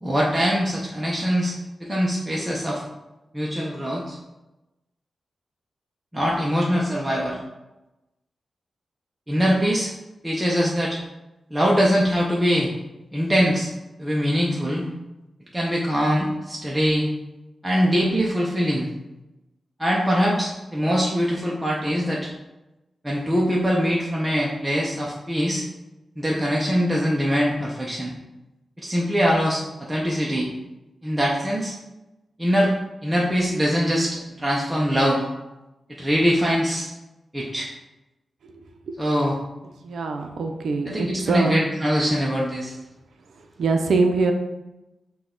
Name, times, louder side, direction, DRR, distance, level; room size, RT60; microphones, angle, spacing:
voice 1, 0.0-1.6 1.8-2.8 3.3-4.2 6.1-7.4 9.3-9.9 10.2-11.0 11.5-12.7 13.1-13.7 14.0-14.8 15.5-17.1 17.6-18.9 19.8-22.3 23.0-25.6 26.2-28.1 28.8-30.5 31.0-31.7 32.4-32.8 33.0-35.2 35.9-36.9 37.3-37.7 39.0-39.4 40.9-42.8, equal, 10° right, -4 dB, 0.5 m, -22 dB
voice 2, 39.8-41.6 43.6-44.3, right 3 dB, 85° right, 4 dB, 0.5 m, -23 dB
5.9 x 2.3 x 3.7 m, 0.99 s
wide cardioid pair, 150°, 0 cm